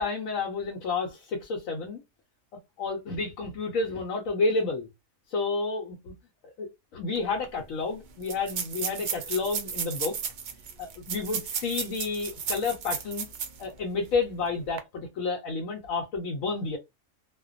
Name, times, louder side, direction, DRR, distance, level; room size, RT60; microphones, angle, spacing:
voice 1, 0.0-2.0 2.8-4.9 5.3-6.1 6.4-10.2 10.8-13.3 13.6-16.8, left 4 dB, 90° left, 1.0 m, -30 dB
sound 1, 7.2-7.3 7.4-7.5 8.2-13.7 14.1-14.2 14.6-14.8, right 7 dB, 85° right, 0.4 m, -34 dB
2.4 x 2.1 x 2.4 m
omnidirectional pair, 1.4 m